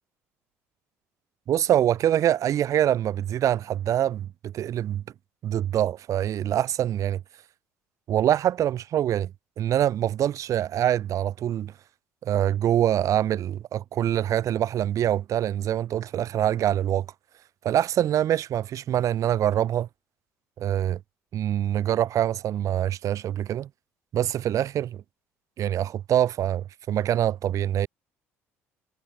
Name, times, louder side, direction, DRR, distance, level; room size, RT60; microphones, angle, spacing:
voice 1, 1.5-5.0 5.4-7.2 8.1-9.3 9.6-11.7 12.2-17.1 17.6-19.9 20.6-21.0 21.3-23.7 24.1-25.0 25.6-27.9, right 11 dB, 50° right, 0.6 m, -24 dB
hypercardioid pair, 60°, 7 cm